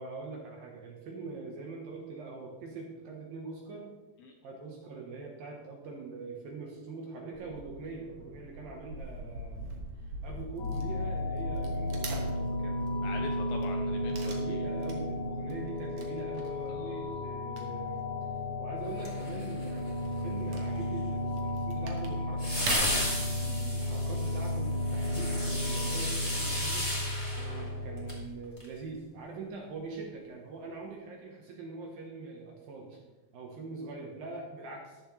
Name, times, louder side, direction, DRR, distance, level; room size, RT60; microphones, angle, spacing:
voice 1, 0.0-3.9 4.4-9.6 10.0-12.8 14.2-18.0 18.6-23.1 23.6-33.0 33.3-35.0, right 3 dB, 65° right, 1 dB, 2.5 m, -43 dB
Wood / Tearing, 7.3-26.9, right 2 dB, 85° right, 1.4 m, -45 dB
sound 1, 10.6-28.2, left 1 dB, 55° left, 2.9 m, -33 dB
voice 2, 13.0-14.6 16.7-17.1 23.4-23.8, left 4 dB, 75° left, 2 dB, 2.4 m, -44 dB
sound 2, 19.0-19.9 22.4-28.2 28.6-28.7, left 1 dB, 10° left, 1.6 m, -35 dB
13.0 x 11.0 x 3.2 m, 1.1 s
omnidirectional pair, 5.3 m